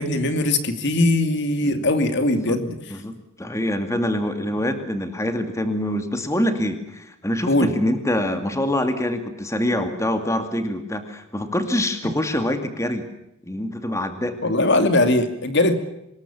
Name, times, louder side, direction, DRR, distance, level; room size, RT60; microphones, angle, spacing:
voice 1, 0.0-2.8 7.5-7.7 14.4-15.8, left 2 dB, 55° left, 9 dB, 2.6 m, -20 dB
voice 2, 2.9-13.1 13.5-14.4, left 1 dB, 15° left, 8 dB, 2.4 m, -25 dB
25.0 x 21.0 x 7.2 m, 0.84 s
head